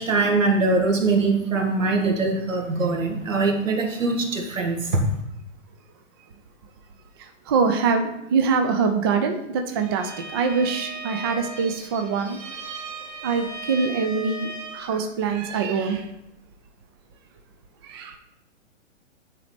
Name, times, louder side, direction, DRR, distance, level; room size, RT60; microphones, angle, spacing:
voice 1, 0.0-4.8, right 3 dB, 80° right, 2 dB, 1.7 m, -22 dB
voice 2, 7.5-12.4 13.2-16.1 17.9-18.2, right 5 dB, 20° right, 5 dB, 0.3 m, -24 dB
Bowed string instrument, 9.7-15.0, right 3 dB, 45° right, 1.3 m, -37 dB
10.5 x 4.0 x 3.3 m, 0.86 s
hypercardioid pair, 125°, 38 cm